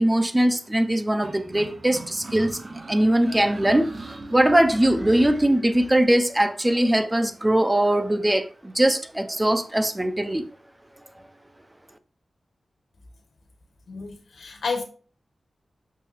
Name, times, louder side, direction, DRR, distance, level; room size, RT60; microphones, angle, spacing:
voice 1, 0.0-2.6 2.9-3.9 4.3-10.4, right 1 dB, 15° right, 0.8 m, -21 dB
sound 1, 1.2-6.0, right 2 dB, 40° right, 1.1 m, -38 dB
voice 2, 13.9-14.8, left 4 dB, 80° left, 1.5 m, -30 dB
6.8 x 6.1 x 2.7 m
wide cardioid pair, 85°, 0 cm